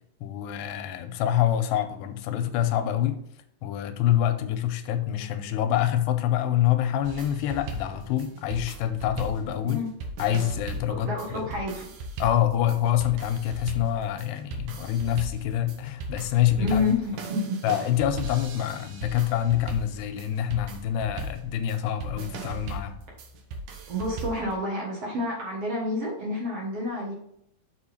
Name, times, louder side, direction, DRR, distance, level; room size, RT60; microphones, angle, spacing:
voice 1, 0.2-3.2 3.6-9.8 10.2-11.5 12.2-16.9 17.6-22.9, left 11 dB, 90° left, 8 dB, 2.8 m, -26 dB
sound 1, 7.0-24.5, right 2 dB, 70° right, 2.0 m, -38 dB
voice 2, 10.9-11.9 16.6-17.6 23.9-27.1, left 2 dB, 55° right, -3 dB, 1.8 m, -29 dB
7.0 x 5.2 x 4.3 m, 0.73 s
omnidirectional pair, 4.7 m